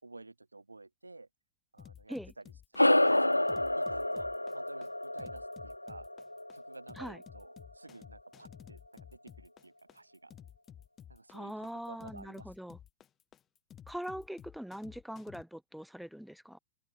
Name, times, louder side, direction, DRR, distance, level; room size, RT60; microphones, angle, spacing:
voice 1, 0.0-1.3 1.7-3.5 3.8-6.1 6.5-10.3 11.1-12.5, right 2 dB, 80° right, 4.3 m, -52 dB
sound 1, 1.8-15.4, left 9 dB, 25° left, 3.3 m, -53 dB
sound 2, 2.8-7.5, left 1 dB, 85° left, 0.6 m, -29 dB
voice 2, 11.3-12.8 13.9-16.6, equal, ahead, 3.2 m, -42 dB
figure-of-eight pair, 90°, 0 cm